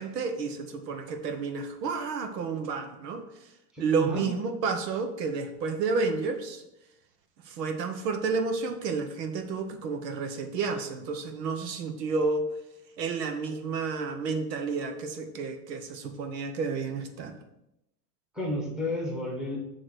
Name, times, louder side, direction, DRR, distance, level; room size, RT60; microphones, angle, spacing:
voice 1, 0.0-3.3 3.8-6.6 7.5-12.5 13.0-17.4, right 4 dB, 90° right, 6 dB, 1.2 m, -31 dB
voice 2, 3.7-4.3 18.3-19.6, left 1 dB, ahead, -3 dB, 1.2 m, -32 dB
9.0 x 3.3 x 6.1 m, 0.86 s
supercardioid pair, 160°, 48 cm